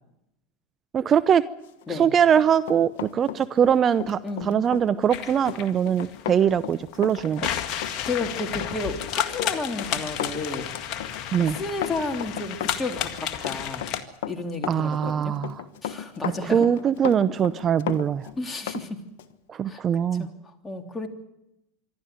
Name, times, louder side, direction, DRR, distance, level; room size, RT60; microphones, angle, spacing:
voice 1, 0.9-1.4 1.9-7.5 11.3-11.6 14.7-15.6 16.5-18.3 19.5-20.3, right 8 dB, 35° right, 15 dB, 0.7 m, -22 dB
Run, 1.8-18.9 19.2-19.3, left 10 dB, 70° left, 1.3 m, -35 dB
voice 2, 4.2-4.5 8.0-10.7 11.5-13.9 14.3-15.4 15.8-16.6 18.4-19.0 19.7-19.8 20.2-21.1, left 3 dB, 20° left, 4 dB, 3.2 m, -32 dB
sound 1, 5.1-14.0, left 10 dB, 50° left, 1.9 m, -32 dB
25.5 x 12.5 x 9.4 m, 0.86 s
hypercardioid pair, 90°, 0 cm